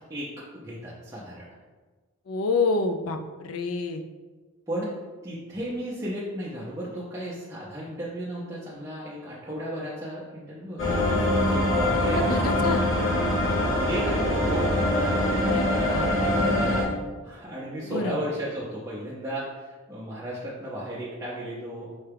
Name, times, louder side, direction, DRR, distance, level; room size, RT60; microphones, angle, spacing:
voice 1, 0.1-1.6 4.7-5.0 5.2-11.0 11.4-12.6 13.9-14.7 17.2-21.9, right 1 dB, 15° right, -8 dB, 0.5 m, -34 dB
voice 2, 2.3-4.0 12.0-12.9 15.4-16.5 17.8-18.2, left 3 dB, 80° left, 7 dB, 0.4 m, -28 dB
sound 1, 10.8-16.8, left 1 dB, 60° left, 1.0 m, -23 dB
5.4 x 2.3 x 3.3 m, 1.3 s
head